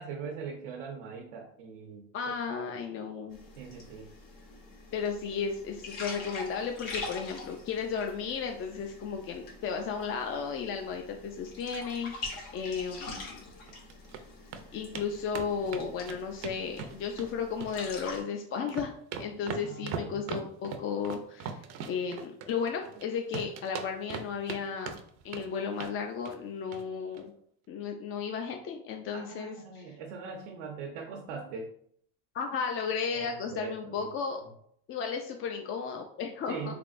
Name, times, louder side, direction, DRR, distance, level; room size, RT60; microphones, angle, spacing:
voice 1, 0.0-2.0 2.5-2.6 3.6-4.1 19.6-20.2 29.1-31.7 33.1-34.1 36.5-36.8, right 5 dB, 90° right, 0 dB, 0.7 m, -41 dB
voice 2, 2.1-3.4 4.9-13.4 14.7-21.6 21.9-24.9 25.2-27.3 27.7-29.8 32.3-34.4 34.9-36.7, left 6 dB, 35° left, 3 dB, 0.4 m, -34 dB
sound 1, 3.3-18.2, left 3 dB, 75° left, 1.3 m, -45 dB
sound 2, 13.7-14.2 14.5-14.6 14.9-15.1 15.3-17.3 17.6-18.3 18.6-23.0 23.3-24.6 24.9-25.5 25.8-26.0 26.2-26.4 26.7-26.8 27.1-27.2, right 6 dB, 45° right, 0.5 m, -39 dB
3.4 x 3.4 x 2.5 m, 0.64 s
supercardioid pair, 110°, 37 cm